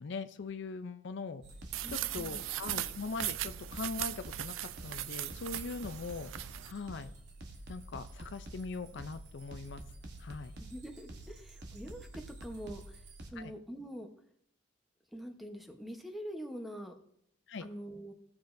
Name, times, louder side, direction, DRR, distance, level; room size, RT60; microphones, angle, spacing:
voice 1, 0.0-1.4 1.9-6.3 6.6-7.1 7.7-9.8 10.2-10.6 13.4-13.5 17.5-17.7, left 4 dB, 65° left, 10 dB, 0.5 m, -41 dB
sound 1, 1.4-13.3, right 1 dB, 60° right, 1.1 m, -48 dB
sound 2, 1.7-6.7, right 14 dB, 85° right, 0.3 m, -39 dB
voice 2, 1.8-2.4 10.6-14.1 15.1-16.9 17.6-18.1, equal, ahead, 4 dB, 0.9 m, -45 dB
16.5 x 7.0 x 2.6 m, 0.70 s
head